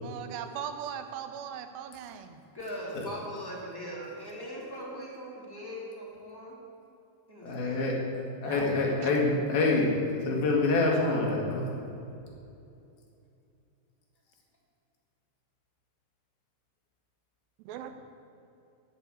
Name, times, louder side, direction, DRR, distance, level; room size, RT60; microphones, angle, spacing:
voice 1, 0.0-2.4 8.4-9.1 17.7-17.9, right 9 dB, 80° right, 8 dB, 2.9 m, -39 dB
voice 2, 2.5-6.5 7.3-7.9, equal, 10° left, -5 dB, 1.5 m, -40 dB
voice 3, 7.4-7.9 8.4-11.6, left 3 dB, 65° left, -2 dB, 3.6 m, -26 dB
12.0 x 6.6 x 9.3 m, 2.7 s
omnidirectional pair, 4.9 m